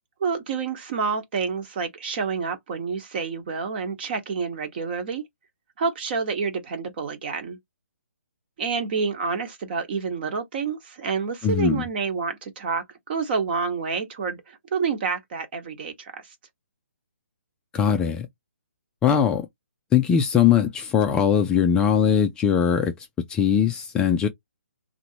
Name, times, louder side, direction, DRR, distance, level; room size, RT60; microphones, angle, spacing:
voice 1, 0.2-5.2 5.8-7.6 8.6-16.3, right 5 dB, 40° right, 1.2 m, -28 dB
voice 2, 11.4-11.8 17.7-18.3 19.0-19.5 19.9-24.3, left 8 dB, 10° left, 0.3 m, -21 dB
2.9 x 2.5 x 2.8 m
hypercardioid pair, 150°, 8 cm